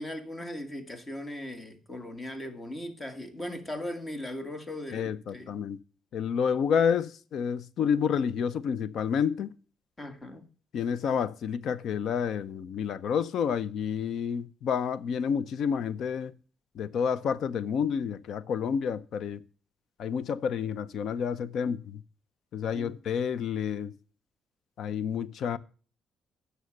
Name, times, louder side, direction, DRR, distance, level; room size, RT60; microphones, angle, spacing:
voice 1, 0.0-5.5 10.0-10.4 22.7-22.9, left 1 dB, 25° left, 1.7 m, -38 dB
voice 2, 4.9-5.8 6.1-9.5 10.7-16.3 16.7-19.4 20.0-22.0 22.5-23.9 24.8-25.6, left 7 dB, 70° left, 0.6 m, -29 dB
9.5 x 6.3 x 6.3 m
cardioid pair, 90°, 0 cm